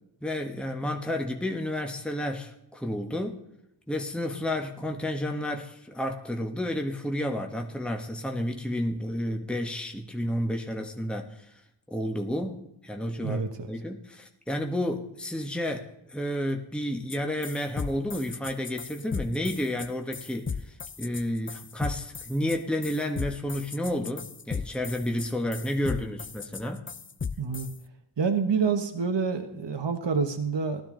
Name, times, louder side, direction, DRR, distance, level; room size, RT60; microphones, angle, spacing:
voice 1, 0.2-3.4 3.9-11.5 11.9-26.8, left 1 dB, ahead, 3 dB, 1.1 m, -31 dB
voice 2, 13.2-13.7 27.4-27.7 28.2-30.8, right 5 dB, 60° right, 5 dB, 1.2 m, -27 dB
sound 1, 17.1-17.2 17.4-27.8, left 5 dB, 25° left, 0.4 m, -36 dB
16.5 x 12.0 x 3.8 m, 0.82 s
wide cardioid pair, 60°, 48 cm